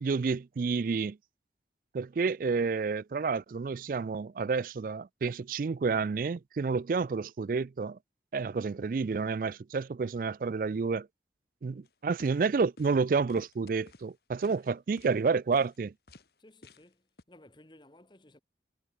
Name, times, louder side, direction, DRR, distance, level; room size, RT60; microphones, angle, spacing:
voice 1, 0.0-1.2 1.9-8.0 8.3-11.1 11.6-15.9, right 4 dB, 50° right, 0.3 m, -30 dB
sound 1, 11.8-11.9 12.2-12.4 12.8-13.0 13.3-14.1 14.4-14.7 15.0-15.2 15.5-15.8 16.1-16.3 16.6-16.9 17.2-17.3, left 2 dB, 65° left, 2.3 m, -52 dB
voice 2, 16.4-18.4, left 1 dB, 25° left, 1.5 m, -57 dB
head